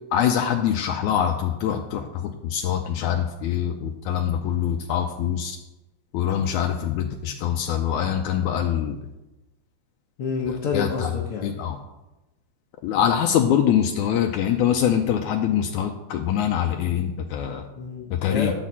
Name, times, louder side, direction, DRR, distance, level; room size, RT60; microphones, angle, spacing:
voice 1, 0.1-5.6 6.1-9.0 10.7-11.1 11.4-11.8 12.8-17.7 18.1-18.5, left 9 dB, 80° left, 3 dB, 1.9 m, -24 dB
voice 2, 10.2-11.5 17.7-18.5, left 5 dB, 60° left, -2 dB, 1.7 m, -28 dB
11.0 x 4.1 x 7.4 m, 1.0 s
omnidirectional pair, 3.6 m